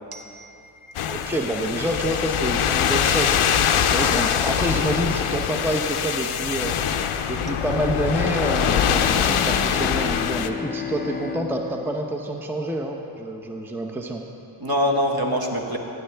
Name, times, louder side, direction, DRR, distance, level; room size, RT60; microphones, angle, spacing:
voice 1, 0.1-0.7 14.6-15.8, equal, 45° right, 1 dB, 1.4 m, -25 dB
sound 1, 0.9-10.5, left 8 dB, 80° left, 0.6 m, -23 dB
voice 2, 1.1-6.8 7.3-14.2, right 1 dB, 5° right, 2 dB, 0.7 m, -28 dB
Bowed string instrument, 8.6-13.5, left 6 dB, 25° left, 0.3 m, -34 dB
15.5 x 8.7 x 3.4 m, 2.9 s
cardioid pair, 45°, 50 cm